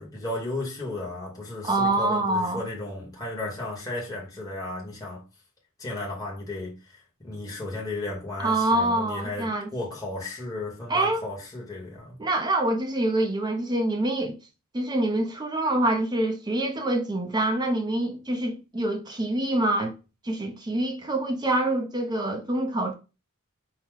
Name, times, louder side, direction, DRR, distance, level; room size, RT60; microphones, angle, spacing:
voice 1, 0.0-5.2 5.8-12.2, left 2 dB, 15° left, 1.1 m, -34 dB
voice 2, 1.6-2.6 8.4-9.7 10.9-11.3 12.2-14.4 14.7-19.9 20.2-22.9, right 1 dB, 20° right, 0.7 m, -25 dB
4.6 x 2.3 x 3.7 m
head